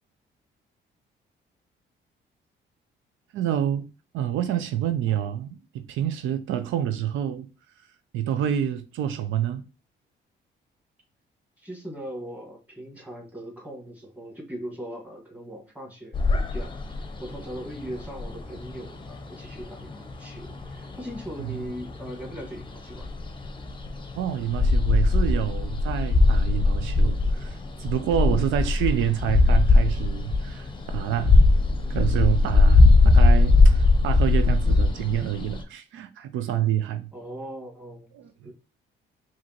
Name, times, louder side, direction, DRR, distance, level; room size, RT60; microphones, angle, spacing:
voice 1, 3.3-3.9 4.1-7.5 8.1-9.6 21.4-21.7 24.1-31.4 31.9-37.1 38.1-38.5, right 10 dB, 80° right, 0.4 m, -28 dB
voice 2, 11.6-23.1 37.1-38.1 38.4-38.5, equal, 5° right, 1.6 m, -39 dB
sound 1, 16.1-35.6, left 3 dB, 25° left, 0.7 m, -20 dB
4.9 x 2.8 x 2.9 m
cardioid pair, 90°, 20 cm